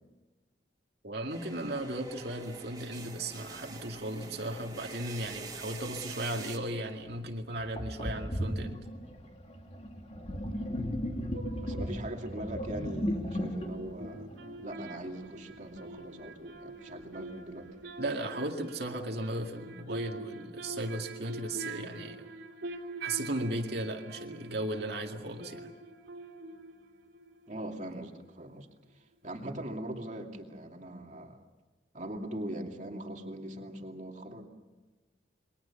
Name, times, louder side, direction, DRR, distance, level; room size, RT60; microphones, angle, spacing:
voice 1, 1.0-8.8 18.0-22.2 23.0-25.7, right 1 dB, 60° right, 2 dB, 2.2 m, -36 dB
sound 1, 1.3-6.6, right 4 dB, 20° right, 2.5 m, -46 dB
Sink (filling or washing), 7.1-7.2 7.8-15.1, equal, 35° left, 2.6 m, -36 dB
sound 2, 11.3-12.5 13.6-28.2 28.4-28.5, right 2 dB, 90° right, 3.3 m, -45 dB
voice 2, 11.6-14.3 14.6-17.7 27.5-28.7 28.9-31.4 31.9-34.5, right 1 dB, 40° right, 3 dB, 2.5 m, -41 dB
28.5 x 23.0 x 7.1 m, 1.2 s
head